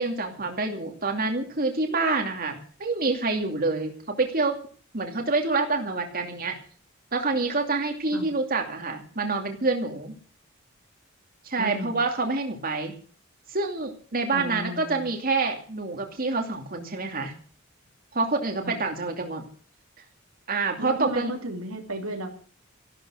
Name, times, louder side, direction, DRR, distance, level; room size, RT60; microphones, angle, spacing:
voice 1, 0.0-4.6 4.9-6.6 7.1-10.1 11.4-13.0 13.5-17.3 18.1-19.4 20.5-21.3, right 3 dB, 45° right, 3 dB, 2.5 m, -27 dB
voice 2, 11.6-12.0 14.3-15.1 18.6-18.8 20.8-22.4, right 2 dB, 85° right, 3 dB, 2.9 m, -34 dB
14.5 x 12.5 x 6.3 m, 0.43 s
head